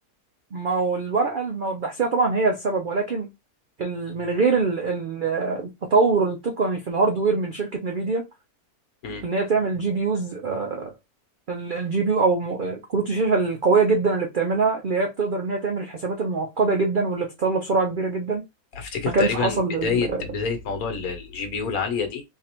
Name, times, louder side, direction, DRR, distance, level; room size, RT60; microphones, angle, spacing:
voice 1, 0.5-3.3 3.8-8.2 9.2-10.9 11.5-18.5 19.1-20.2, right 4 dB, 65° right, 0.5 m, -23 dB
voice 2, 18.7-22.2, left 5 dB, 70° left, 1.3 m, -27 dB
3.9 x 2.7 x 2.9 m
omnidirectional pair, 1.6 m